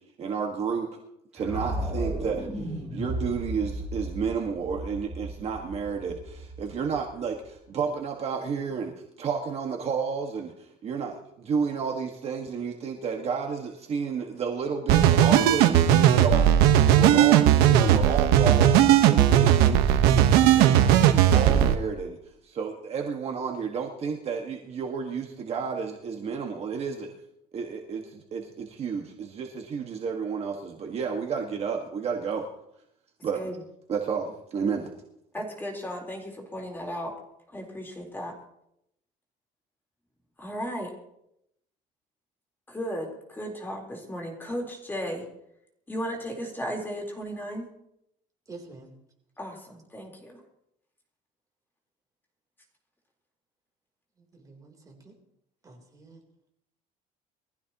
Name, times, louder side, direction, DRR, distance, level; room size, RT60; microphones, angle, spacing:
voice 1, 0.2-0.9 1.3-2.5 2.9-8.9 9.2-16.6 16.9-22.2 22.4-27.1 27.5-32.4 33.2-33.4 33.9-34.9, right 6 dB, 40° right, 1 dB, 1.7 m, -31 dB
sound 1, 1.4-7.4, right 1 dB, 5° right, 5.8 m, -35 dB
sound 2, 14.9-21.7, right 10 dB, 85° right, 1.2 m, -18 dB
voice 2, 35.3-37.1 37.5-38.3 40.4-40.9 42.7-45.2 45.9-47.7 49.4-50.3, equal, 15° left, 0 dB, 4.0 m, -35 dB
voice 3, 48.5-48.9 54.3-55.1 55.6-56.2, right 3 dB, 20° right, 1 dB, 3.7 m, -47 dB
23.0 x 15.5 x 3.0 m, 0.78 s
cardioid pair, 125°, 16 cm